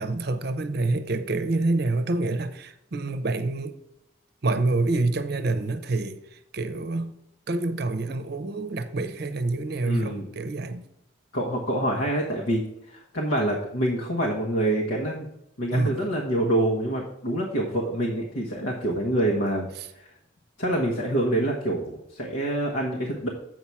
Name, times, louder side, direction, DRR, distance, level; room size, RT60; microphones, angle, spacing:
voice 1, 0.0-3.7 4.4-7.1 7.5-10.8 15.7-15.9, right 2 dB, 55° right, 0.7 m, -27 dB
voice 2, 9.8-10.3 11.3-15.3 15.6-19.7 19.9-20.1 20.6-23.3, right 1 dB, 80° left, 1.2 m, -26 dB
7.9 x 5.6 x 4.7 m
head